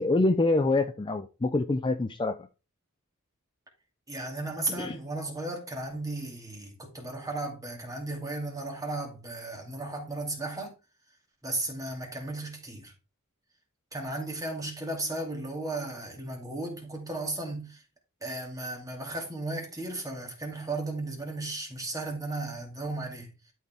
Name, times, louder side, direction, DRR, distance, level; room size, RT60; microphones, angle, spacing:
voice 1, 0.0-2.4 4.8-5.0, left 2 dB, 20° left, 0.4 m, -25 dB
voice 2, 4.1-10.7 11.4-12.9 13.9-17.8 18.2-23.3, right 2 dB, 15° right, 2.2 m, -35 dB
11.5 x 4.6 x 3.5 m
head